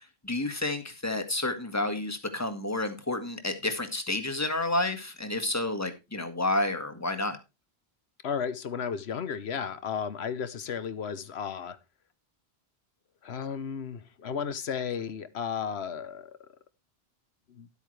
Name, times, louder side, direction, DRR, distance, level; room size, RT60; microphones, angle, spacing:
voice 1, 0.2-7.4, left 2 dB, 15° left, 7 dB, 1.6 m, -30 dB
voice 2, 8.2-11.8 13.2-16.4 17.5-17.7, left 7 dB, 85° left, 13 dB, 1.2 m, -34 dB
12.0 x 8.4 x 3.2 m, 0.26 s
omnidirectional pair, 1.0 m